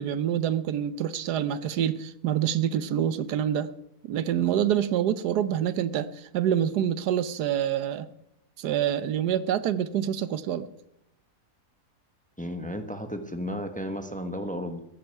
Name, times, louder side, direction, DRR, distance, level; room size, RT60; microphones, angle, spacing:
voice 1, 0.0-3.7 4.0-8.1 8.6-10.7, right 10 dB, 85° right, 1.3 m, -26 dB
voice 2, 12.4-14.8, equal, 5° left, 1.1 m, -33 dB
15.0 x 14.5 x 4.7 m
omnidirectional pair, 1.7 m